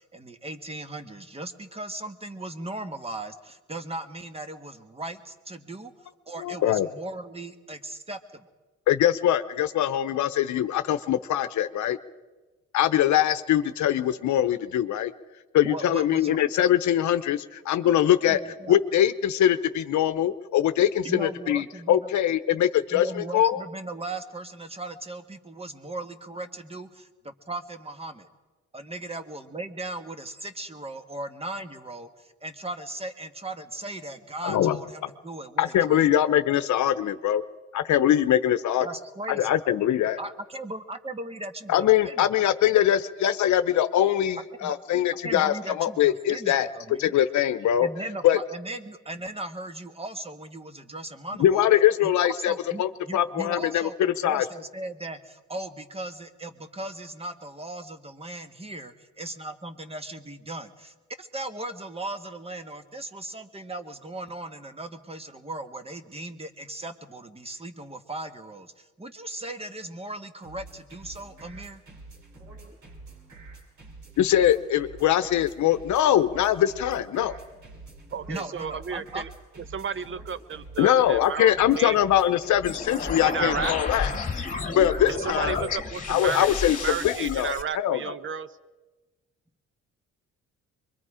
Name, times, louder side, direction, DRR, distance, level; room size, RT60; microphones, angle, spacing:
voice 1, 0.0-5.9 6.3-8.2 15.6-16.4 18.3-18.8 21.0-22.1 22.9-28.3 28.7-36.1 38.8-39.6 40.2-42.3 44.6-44.7 45.2-47.1 47.8-51.7 52.0-52.1 52.4-71.8 78.3-79.3, right 2 dB, 20° right, 8 dB, 1.5 m, -38 dB
voice 2, 6.4-6.9 8.9-12.0 12.7-15.1 15.5-17.4 17.7-18.4 18.7-23.6 34.4-34.8 35.6-37.4 37.7-38.8 39.4-40.2 41.7-46.7 47.0-47.9 48.2-48.4 51.4-52.5 52.8-54.4 74.2-77.4 80.8-84.1 84.8-85.6 86.1-88.0, left 11 dB, 70° left, 11 dB, 0.8 m, -22 dB
sound 1, 70.4-85.8, right 3 dB, 70° right, 5.8 m, -47 dB
voice 3, 78.1-79.3 79.7-82.0 83.2-83.7 85.1-88.5, right 7 dB, 40° right, 15 dB, 0.9 m, -33 dB
sound 2, 82.6-87.6, left 4 dB, 25° left, 2.4 m, -31 dB
24.5 x 22.5 x 5.0 m, 1.2 s
cardioid pair, 90°, 30 cm